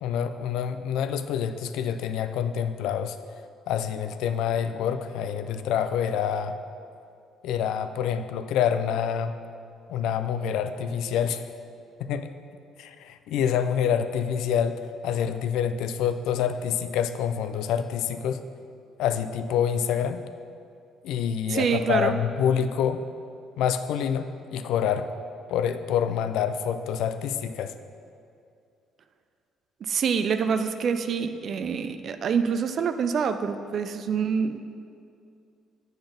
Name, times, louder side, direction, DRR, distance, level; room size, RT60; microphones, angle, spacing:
voice 1, 0.0-3.2 3.7-6.6 7.4-9.3 9.9-11.4 12.0-12.3 12.8-18.4 19.0-20.2 21.0-23.0 23.6-25.1 25.5-27.7, left 8 dB, 80° left, 9 dB, 0.3 m, -27 dB
voice 2, 21.5-22.2 29.8-34.6, right 6 dB, 55° right, 9 dB, 0.3 m, -26 dB
6.9 x 3.9 x 5.1 m, 2.4 s
cardioid pair, 85°, 0 cm